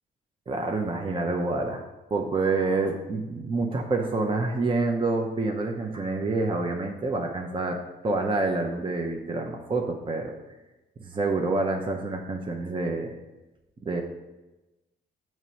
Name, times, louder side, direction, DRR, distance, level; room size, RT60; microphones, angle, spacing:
voice 1, 0.5-1.8 2.1-7.8 8.0-10.3 11.0-13.1 13.9-14.0, right 3 dB, 25° right, 2 dB, 0.6 m, -27 dB
6.4 x 3.1 x 5.6 m, 1.1 s
cardioid pair, 90°, 20 cm